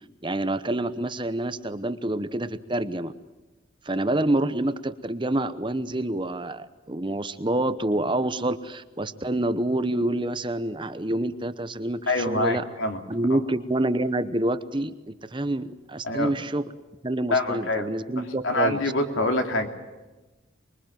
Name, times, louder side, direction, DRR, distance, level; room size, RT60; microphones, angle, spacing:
voice 1, 0.2-3.1 3.8-12.7 13.1-16.6 17.0-18.8, right 1 dB, 25° right, 12 dB, 0.9 m, -27 dB
voice 2, 12.1-13.0 13.3-13.4 16.0-16.3 17.3-17.8 18.4-19.7, left 2 dB, 75° left, 5 dB, 2.9 m, -25 dB
25.0 x 22.5 x 9.2 m, 1.1 s
head